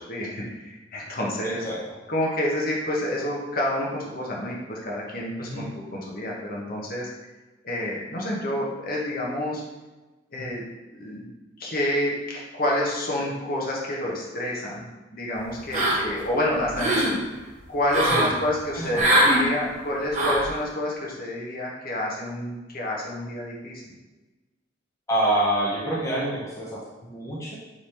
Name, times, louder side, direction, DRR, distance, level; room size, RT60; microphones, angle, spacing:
voice 1, 0.0-1.6 2.1-7.1 7.6-9.6 10.3-10.6 10.9-11.3 11.6-14.9 15.1-23.8, left 1 dB, 50° left, -3 dB, 1.0 m, -29 dB
voice 2, 1.4-1.8 5.4-5.6 10.4-10.6 18.0-18.3 18.7-19.2 25.1-27.6, right 1 dB, 15° left, -5 dB, 0.7 m, -27 dB
sound 1, 15.7-16.2 16.6-17.1 17.9-18.3 18.9-19.4 20.1-20.5, right 1 dB, 40° right, 1.0 m, -21 dB
3.9 x 3.2 x 4.2 m, 1.2 s
head